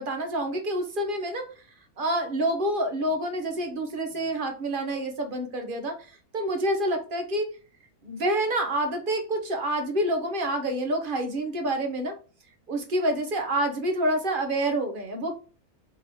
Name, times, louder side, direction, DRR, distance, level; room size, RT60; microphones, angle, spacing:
voice 1, 0.0-1.5 2.0-7.5 8.0-12.2 12.7-15.4, right 1 dB, 45° right, 5 dB, 0.8 m, -28 dB
3.8 x 2.9 x 4.2 m, 0.36 s
omnidirectional pair, 1.6 m